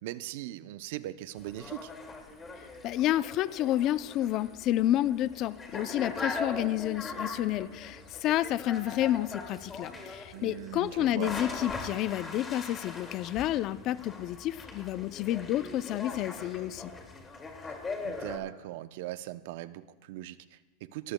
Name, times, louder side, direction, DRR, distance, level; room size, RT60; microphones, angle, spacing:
voice 1, 0.0-1.9 10.3-11.3 18.0-21.1, right 15 dB, 65° right, 13 dB, 0.6 m, -40 dB
sound 1, 1.3-18.4, left 3 dB, 20° left, 2.2 m, -41 dB
voice 2, 2.8-16.9, left 13 dB, 45° left, 16 dB, 0.5 m, -30 dB
29.0 x 14.0 x 2.2 m, 1.2 s
supercardioid pair, 120°, 0 cm